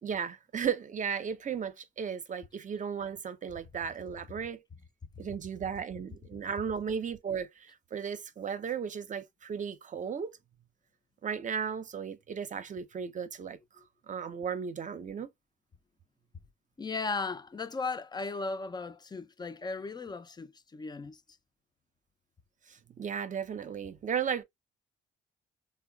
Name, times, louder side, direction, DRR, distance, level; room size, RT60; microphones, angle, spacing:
voice 1, 0.0-4.6 5.2-10.3 11.2-13.6 14.1-15.3 22.7-24.4, right 7 dB, 40° right, 0.6 m, -35 dB
voice 2, 16.8-21.2, left 4 dB, 20° left, 0.4 m, -36 dB
3.7 x 2.1 x 2.2 m
cardioid pair, 90°, 20 cm